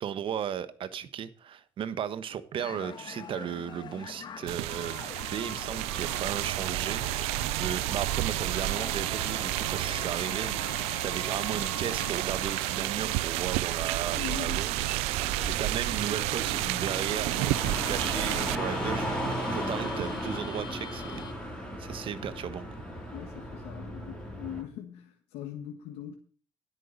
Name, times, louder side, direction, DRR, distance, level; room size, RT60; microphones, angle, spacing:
voice 1, 0.0-7.0 7.6-15.2 15.6-22.7, right 9 dB, 60° right, 1.2 m, -36 dB
sound 1, 2.6-21.3, left 6 dB, 45° left, 1.6 m, -44 dB
sound 2, 4.5-18.6, right 19 dB, 85° right, 0.4 m, -31 dB
voice 2, 14.1-14.7 23.1-26.2, left 11 dB, 85° left, 1.4 m, -41 dB
Car, 15.1-24.6, equal, 10° left, 6.6 m, -36 dB
10.0 x 8.6 x 5.2 m
supercardioid pair, 75°, 10 cm